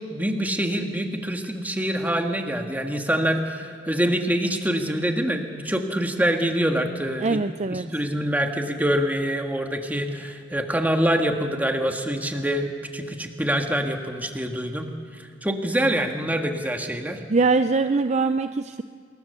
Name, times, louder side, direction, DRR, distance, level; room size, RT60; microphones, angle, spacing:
voice 1, 0.1-7.4 7.7-14.9 15.4-17.2, equal, 10° right, 4 dB, 1.8 m, -25 dB
voice 2, 7.2-7.9 17.3-18.8, right 3 dB, 35° right, 9 dB, 0.5 m, -22 dB
27.0 x 22.0 x 6.9 m, 2.3 s
head